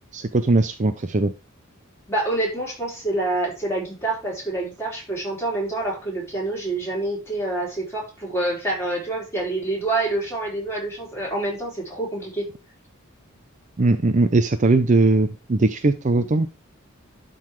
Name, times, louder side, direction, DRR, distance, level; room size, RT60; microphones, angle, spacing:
voice 1, 0.1-1.3 13.8-16.5, right 2 dB, 35° right, 9 dB, 0.6 m, -19 dB
voice 2, 2.1-12.5, right 2 dB, 15° left, -4 dB, 4.5 m, -27 dB
11.5 x 3.9 x 4.7 m, 0.30 s
head